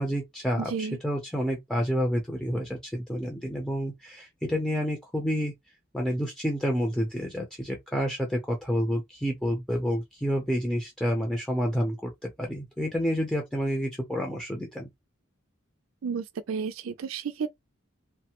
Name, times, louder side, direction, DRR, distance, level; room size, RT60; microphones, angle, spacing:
voice 1, 0.0-5.5 5.9-14.9, equal, 5° left, 0.6 m, -29 dB
voice 2, 0.6-1.0 16.0-17.5, right 6 dB, 85° right, 0.4 m, -32 dB
3.3 x 2.1 x 2.9 m
head